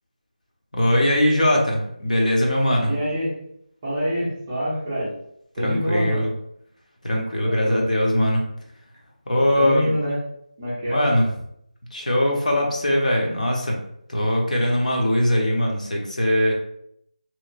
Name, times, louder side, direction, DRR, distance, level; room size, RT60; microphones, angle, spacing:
voice 1, 0.7-2.9 5.6-6.3 7.0-8.4 9.3-9.9 10.9-11.3 11.9-13.8 14.1-16.5, left 1 dB, 65° left, -1 dB, 0.8 m, -21 dB
voice 2, 2.8-3.3 3.8-5.1 5.6-6.2 7.4-7.8 9.6-10.2 10.6-11.1, equal, 10° right, -8 dB, 0.4 m, -26 dB
2.9 x 2.1 x 2.5 m, 0.73 s
figure-of-eight pair, 175°, 4 cm